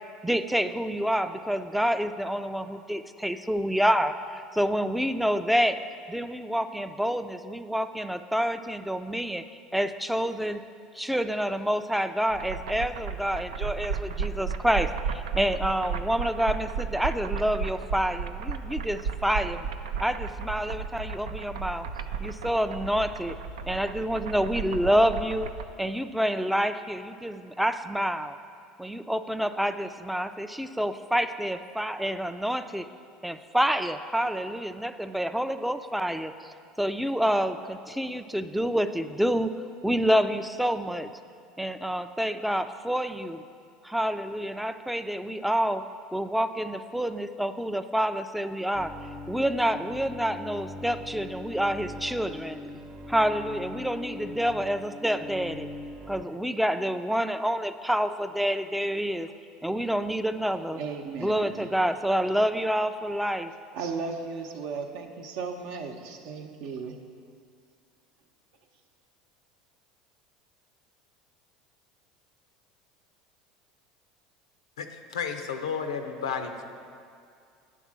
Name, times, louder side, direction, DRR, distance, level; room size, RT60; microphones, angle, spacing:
voice 1, 0.2-5.8 6.1-9.5 9.7-10.6 10.9-19.7 20.0-21.9 22.2-23.4 23.7-25.5 25.8-28.4 28.8-32.9 33.2-39.5 39.8-41.1 41.6-43.4 43.8-45.8 46.1-48.9 49.3-52.6 53.1-55.7 56.1-59.3 59.6-60.8 61.2-63.5, equal, ahead, 10 dB, 0.4 m, -28 dB
sound 1, 12.3-25.6, right 6 dB, 85° right, 0.3 m, -34 dB
Bowed string instrument, 48.7-56.2, left 2 dB, 35° right, 1.0 m, -41 dB
voice 2, 60.8-61.7 63.7-67.0, right 5 dB, 65° right, 4 dB, 0.7 m, -35 dB
voice 3, 75.1-76.6, left 6 dB, 90° left, 6 dB, 0.6 m, -32 dB
10.0 x 3.6 x 6.1 m, 2.3 s
hypercardioid pair, 80°, 3 cm